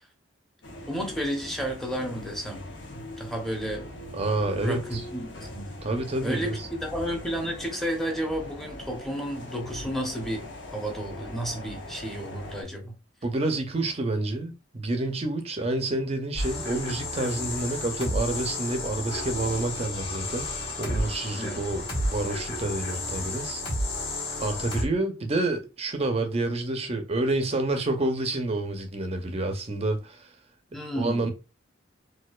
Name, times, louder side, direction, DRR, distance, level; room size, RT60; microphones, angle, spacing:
sound 1, 0.6-12.6, left 1 dB, 65° left, 0.9 m, -41 dB
voice 1, 0.9-2.7 3.2-3.9 4.6-5.7 6.2-10.5 10.7-12.9 21.3-21.6 30.7-31.3, equal, ahead, 0.8 m, -32 dB
voice 2, 4.1-5.0 5.8-6.6 13.2-20.5 20.8-23.6 24.4-30.3 31.0-31.3, right 2 dB, 30° right, 0.6 m, -28 dB
sound 2, 16.3-24.8, left 1 dB, 30° left, 1.7 m, -32 dB
4.3 x 2.4 x 2.3 m
head